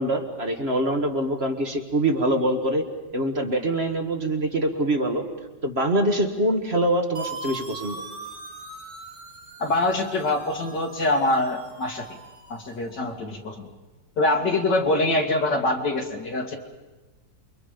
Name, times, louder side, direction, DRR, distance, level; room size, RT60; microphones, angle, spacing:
voice 1, 0.0-2.9 3.1-5.3 5.6-8.0, right 1 dB, 35° right, 4 dB, 1.8 m, -24 dB
sound 1, 7.2-12.9, right 3 dB, 55° right, 2.8 m, -41 dB
voice 2, 9.6-12.2 12.5-13.7 14.2-16.6, left 2 dB, 75° left, 2 dB, 2.9 m, -24 dB
29.0 x 23.5 x 5.2 m, 1.2 s
omnidirectional pair, 1.9 m